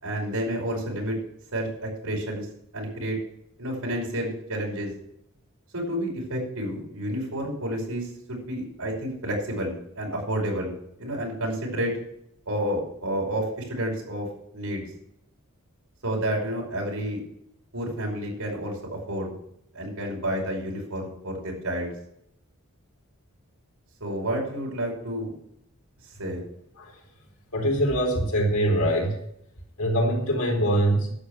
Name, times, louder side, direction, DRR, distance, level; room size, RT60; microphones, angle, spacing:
voice 1, 0.0-1.2 1.5-2.5 2.7-3.2 3.6-4.9 5.7-11.9 12.5-14.3 14.5-14.9 16.0-17.2 17.7-18.8 19.1-19.3 19.7-21.9 24.0-25.4 26.2-26.4, right 1 dB, 90° right, -1 dB, 5.5 m, -30 dB
voice 2, 27.5-29.2 29.8-31.1, right 1 dB, 85° left, 1 dB, 4.2 m, -23 dB
11.5 x 8.5 x 6.1 m, 0.75 s
head